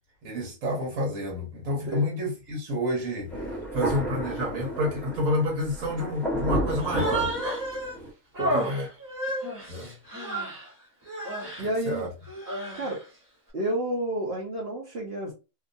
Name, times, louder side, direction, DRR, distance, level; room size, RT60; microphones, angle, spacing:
voice 1, 0.2-7.4 8.5-8.9 9.7-10.0 11.6-12.1, left 1 dB, 75° right, 1.4 m, -29 dB
Thunder, 3.3-8.1, right 1 dB, ahead, 0.7 m, -32 dB
Human voice, 6.8-8.0 8.3-10.7 11.1-11.7 12.3-13.0, right 1 dB, 15° right, 1.3 m, -32 dB
voice 2, 8.3-8.7 11.6-12.1 12.7-13.0 13.5-15.3, right 1 dB, 55° right, 1.0 m, -30 dB
2.8 x 2.5 x 2.5 m
omnidirectional pair, 1.4 m